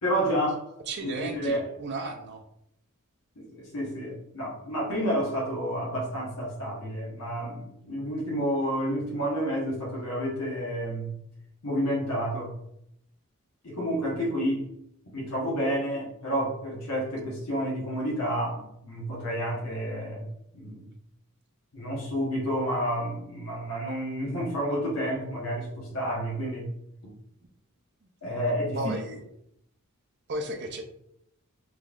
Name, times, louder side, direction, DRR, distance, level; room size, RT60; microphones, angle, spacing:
voice 1, 0.0-0.6 1.0-1.7 3.4-11.2 11.6-12.5 13.6-14.7 15.1-20.3 20.5-20.9 21.7-26.7 27.0-27.1 28.2-28.9, equal, 85° left, -5 dB, 1.0 m, -30 dB
voice 2, 0.9-2.4 28.7-29.2 30.3-30.8, right 2 dB, 50° right, 3 dB, 0.5 m, -34 dB
3.6 x 3.0 x 2.4 m, 0.76 s
head